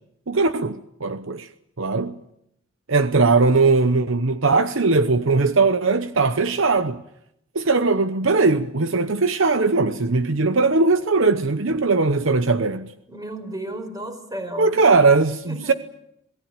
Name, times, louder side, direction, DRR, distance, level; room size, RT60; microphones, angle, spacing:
voice 1, 0.3-1.5 1.8-2.2 2.9-7.0 7.5-12.9 14.6-15.7, right 3 dB, 65° right, 0.9 m, -19 dB
voice 2, 13.1-14.9 15.4-15.7, right 1 dB, 20° right, 4.6 m, -33 dB
27.0 x 18.5 x 8.9 m
head